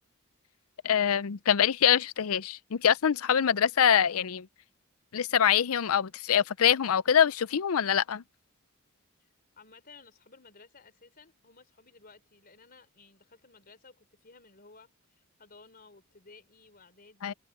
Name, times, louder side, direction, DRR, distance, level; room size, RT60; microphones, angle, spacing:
voice 1, 0.8-4.5 5.1-8.2 17.2-17.3, left 8 dB, 75° left, 0.5 m, -24 dB
voice 2, 9.6-17.4, left 4 dB, 40° left, 3.9 m, -56 dB
head